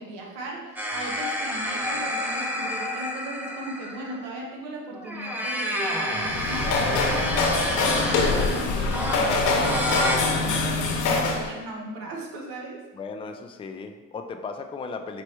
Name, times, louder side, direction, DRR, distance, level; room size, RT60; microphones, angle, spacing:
voice 1, 0.0-7.5 7.8-12.8, right 2 dB, 80° right, -1 dB, 1.0 m, -37 dB
sound 1, 0.8-4.3 4.9-10.2, equal, 5° right, 0.7 m, -29 dB
sound 2, 6.1-11.5, left 3 dB, 65° left, 0.8 m, -24 dB
voice 2, 12.9-15.2, left 4 dB, 15° left, 6 dB, 0.3 m, -36 dB
4.4 x 3.0 x 3.2 m, 1.2 s
supercardioid pair, 70°, 33 cm